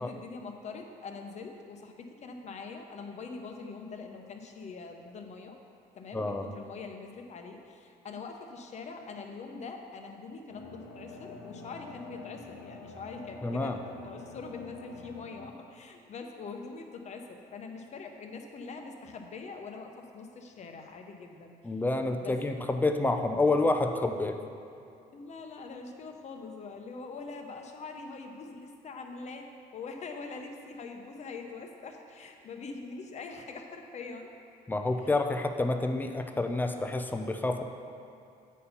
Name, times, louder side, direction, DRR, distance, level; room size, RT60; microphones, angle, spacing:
voice 1, 0.0-5.6 5.9-21.5 22.2-22.4 25.1-29.5 29.7-34.3 35.0-35.1, left 4 dB, 40° left, 3 dB, 0.8 m, -43 dB
voice 2, 6.1-6.5 13.4-13.8 21.6-24.4 34.7-37.6, left 2 dB, 10° left, 5 dB, 0.5 m, -28 dB
sound 1, 10.5-15.5, left 3 dB, 85° left, 0.9 m, -46 dB
8.3 x 4.3 x 5.5 m, 2.6 s
cardioid pair, 110°, 17 cm